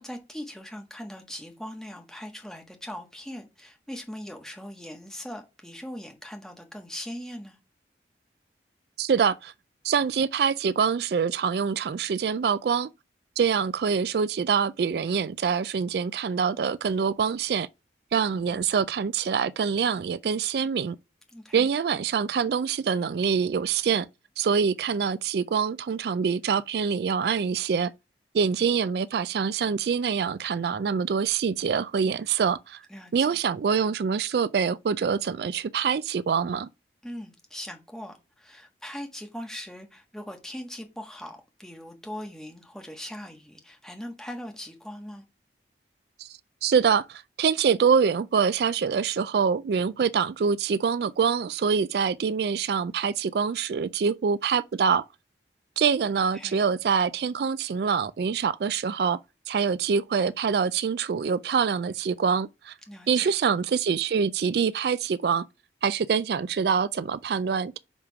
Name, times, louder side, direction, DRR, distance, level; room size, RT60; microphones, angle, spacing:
voice 1, 0.0-7.6 21.3-21.7 32.9-33.4 37.0-45.2 56.3-56.6 62.9-63.3, equal, 5° left, 1.4 m, -40 dB
voice 2, 9.0-9.5 9.8-12.9 13.4-17.7 18.1-21.0 21.5-24.1 24.4-27.9 28.3-32.8 33.1-36.7 46.2-55.0 55.8-59.2 59.5-62.7 63.1-65.4 65.8-67.8, right 6 dB, 70° right, 0.3 m, -25 dB
7.2 x 3.6 x 4.6 m
head